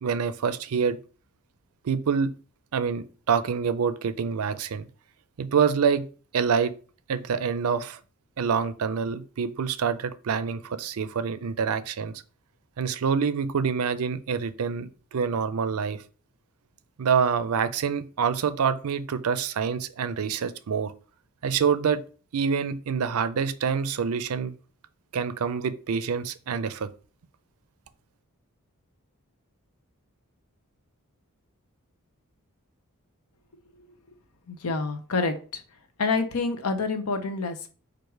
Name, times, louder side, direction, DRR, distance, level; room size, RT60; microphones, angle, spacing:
voice 1, 0.0-1.0 1.8-2.3 2.7-4.9 5.4-6.1 6.3-6.7 7.1-8.0 8.4-12.2 12.8-16.0 17.0-20.9 21.4-22.0 22.3-24.5 25.1-26.9, right 6 dB, 75° right, 0.4 m, -26 dB
voice 2, 34.5-35.6 36.0-37.7, left 4 dB, 80° left, 0.7 m, -27 dB
4.7 x 2.5 x 4.5 m
head